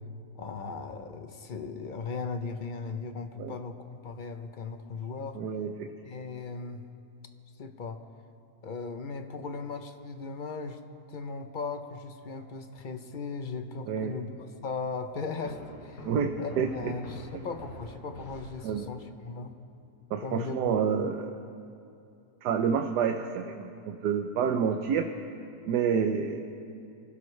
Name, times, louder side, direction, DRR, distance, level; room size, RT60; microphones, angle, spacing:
voice 1, 0.3-5.4 6.0-6.9 7.6-8.0 8.6-10.8 11.1-16.1 16.4-19.5 20.2-20.8, left 4 dB, 45° left, 7 dB, 0.7 m, -37 dB
voice 2, 5.3-5.9 13.9-14.1 16.0-16.9 18.6-18.9 20.1-21.4 22.4-25.1 25.7-26.4, right 7 dB, 90° right, 5 dB, 1.4 m, -28 dB
sound 1, 15.4-19.1, left 1 dB, 80° left, 4.6 m, -46 dB
24.5 x 16.5 x 3.3 m, 2.6 s
omnidirectional pair, 1.7 m